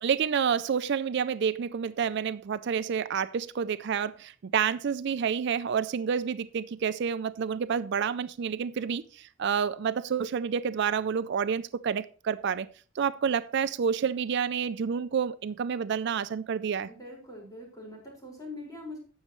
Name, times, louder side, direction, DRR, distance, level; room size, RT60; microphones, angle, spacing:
voice 1, 0.0-12.7 13.0-16.9, right 7 dB, 60° right, 0.4 m, -29 dB
voice 2, 16.8-19.0, left 2 dB, 20° left, 4.8 m, -43 dB
17.0 x 6.4 x 3.1 m
head